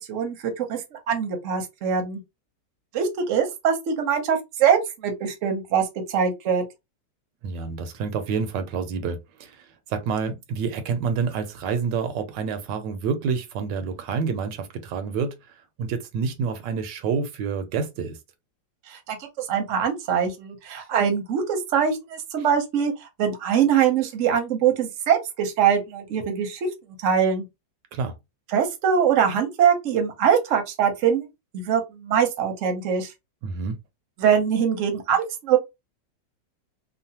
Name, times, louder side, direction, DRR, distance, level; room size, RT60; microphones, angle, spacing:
voice 1, 0.0-2.2 2.9-6.6 18.9-22.9 23.2-26.6 27.0-27.4 28.5-31.3 31.5-33.1 34.2-35.6, right 7 dB, 60° right, 0.9 m, -23 dB
voice 2, 7.4-18.2 27.9-28.1 33.4-33.8, right 5 dB, 80° right, 1.2 m, -28 dB
3.1 x 2.1 x 2.7 m
omnidirectional pair, 1.9 m